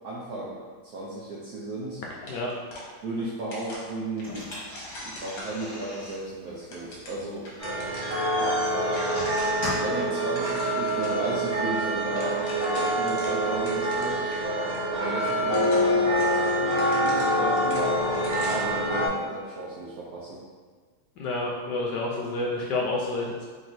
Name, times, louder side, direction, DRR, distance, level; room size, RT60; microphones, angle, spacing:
voice 1, 0.0-0.6 0.9-2.0 3.0-4.5 5.0-7.5 8.4-8.8 9.8-14.2 14.9-17.9 18.4-20.4, right 2 dB, 70° right, -6 dB, 0.9 m, -34 dB
sound 1, 2.2-3.3 3.5-6.0 6.5-8.3 8.6-8.7 8.9-9.7 9.9-11.2 11.5-11.6 11.9-14.4 14.7-14.8 15.4-18.8, left 1 dB, 55° left, 1.2 m, -43 dB
sound 2, 4.2-10.1, left 1 dB, 15° left, 1.3 m, -38 dB
sound 3, 7.6-19.1, equal, 25° right, 0.9 m, -26 dB
voice 2, 21.2-23.5, left 2 dB, 70° left, -3 dB, 1.1 m, -29 dB
3.4 x 3.0 x 4.0 m, 1.5 s
omnidirectional pair, 2.2 m